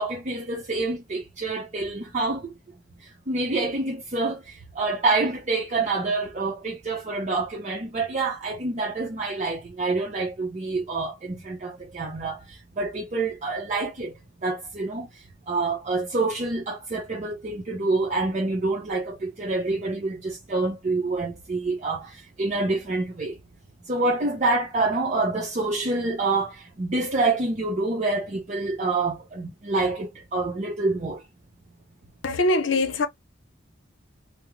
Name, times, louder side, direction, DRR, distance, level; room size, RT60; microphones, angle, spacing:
voice 1, 0.0-2.5 3.3-14.1 14.4-15.1 15.5-23.4 23.9-31.2, right 3 dB, 40° right, 0.6 m, -27 dB
voice 2, 32.2-33.1, left 2 dB, 75° left, 0.7 m, -22 dB
3.5 x 2.0 x 3.0 m
head